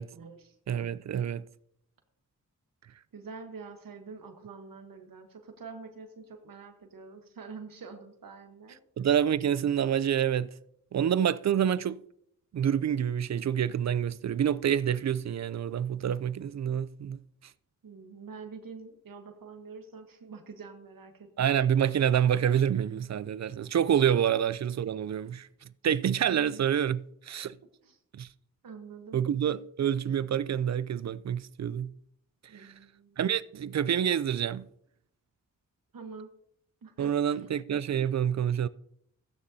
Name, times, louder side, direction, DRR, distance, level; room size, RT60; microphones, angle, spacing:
voice 1, 0.1-0.6 3.1-8.8 17.8-21.3 26.2-26.6 27.8-28.0 28.6-29.2 32.5-33.2 35.9-36.3 36.8-37.4, right 5 dB, 85° right, 1.3 m, -46 dB
voice 2, 0.7-1.4 9.0-10.5 10.9-12.0 12.5-17.2 21.4-25.5 25.8-27.6 28.1-28.3 29.1-31.9 32.5-32.7 33.2-34.7 37.0-38.7, right 9 dB, 55° right, 0.4 m, -27 dB
14.5 x 9.5 x 2.8 m
cardioid pair, 70°, 33 cm